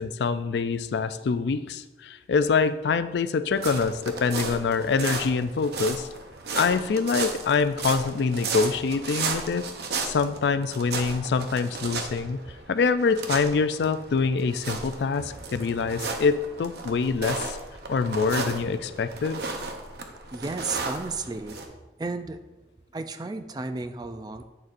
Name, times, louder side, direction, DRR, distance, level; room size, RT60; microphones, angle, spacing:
voice 1, 0.0-6.1 6.6-9.7 10.0-12.4 12.7-17.6 17.9-19.4, left 5 dB, 75° left, 12 dB, 0.4 m, -25 dB
sound 1, 3.5-21.7, right 4 dB, 65° right, 0.8 m, -34 dB
voice 2, 20.3-21.6 22.0-22.4 22.9-24.4, right 3 dB, 20° right, 9 dB, 0.3 m, -33 dB
8.7 x 6.5 x 2.6 m, 1.1 s
head